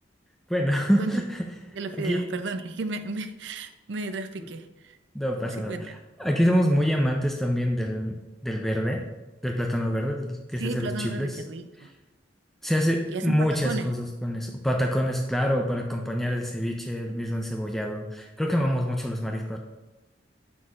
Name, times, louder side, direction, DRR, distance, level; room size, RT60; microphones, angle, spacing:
voice 1, 0.5-1.4 2.0-2.3 5.1-5.9 6.2-9.0 9.4-11.4 12.6-19.6, equal, ahead, 1 dB, 0.4 m, -26 dB
voice 2, 1.7-5.0 5.5-6.0 10.5-11.9 13.1-13.3 13.6-13.9, right 3 dB, 75° right, 9 dB, 0.5 m, -34 dB
7.3 x 6.0 x 2.5 m, 1.1 s
head